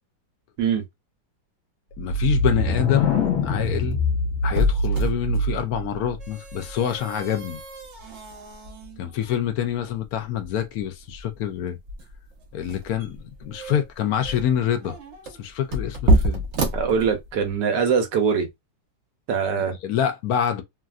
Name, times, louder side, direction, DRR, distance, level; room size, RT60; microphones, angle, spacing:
voice 1, 2.0-4.0 4.4-7.6 9.0-11.8 12.5-15.0 15.4-16.4 19.6-20.6, left 9 dB, 70° left, 0.9 m, -26 dB
sound 1, 2.0-5.8, left 1 dB, 55° left, 1.2 m, -23 dB
sound 2, 3.4-17.6, equal, 55° right, 0.8 m, -29 dB
voice 2, 16.7-18.5 19.3-19.7, right 6 dB, 75° right, 1.4 m, -22 dB
3.2 x 2.5 x 2.3 m
omnidirectional pair, 1.9 m